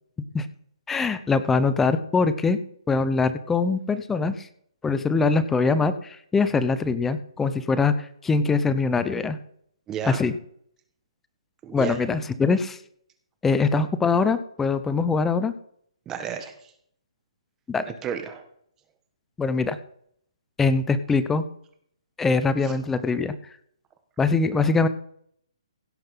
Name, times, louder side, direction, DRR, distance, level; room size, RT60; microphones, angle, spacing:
voice 1, 0.9-2.6 2.9-4.5 4.8-9.4 10.1-10.3 11.7-12.8 13.4-15.5 17.7-17.8 19.4-19.8 20.6-21.4 22.2-23.4 24.2-24.9, left 4 dB, 5° left, 13 dB, 0.6 m, -23 dB
voice 2, 9.9-10.2 11.6-12.0 16.0-16.7 17.8-18.4 22.6-22.8, right 8 dB, 15° right, 8 dB, 1.3 m, -33 dB
16.5 x 5.7 x 5.7 m, 0.65 s
hypercardioid pair, 160°, 3 cm